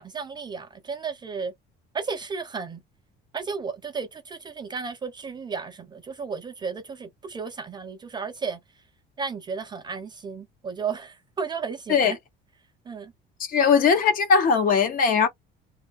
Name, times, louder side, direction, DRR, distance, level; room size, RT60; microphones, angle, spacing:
voice 1, 0.0-1.5 1.9-2.8 3.3-8.6 9.2-12.2 12.9-13.1, right 5 dB, 20° right, 0.4 m, -33 dB
voice 2, 13.5-15.3, left 6 dB, 45° left, 0.6 m, -19 dB
2.6 x 2.3 x 2.2 m
cardioid pair, 170°, 21 cm